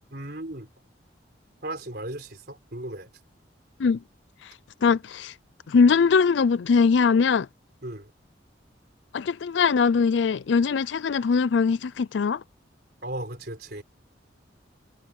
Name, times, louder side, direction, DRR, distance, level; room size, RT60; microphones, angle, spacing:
voice 1, 0.1-0.7 1.6-3.1 7.8-8.1 13.0-13.8, right 1 dB, 55° right, 4.4 m, -36 dB
voice 2, 4.8-5.3 5.7-7.5 9.1-12.4, left 5 dB, 75° left, 0.4 m, -21 dB
head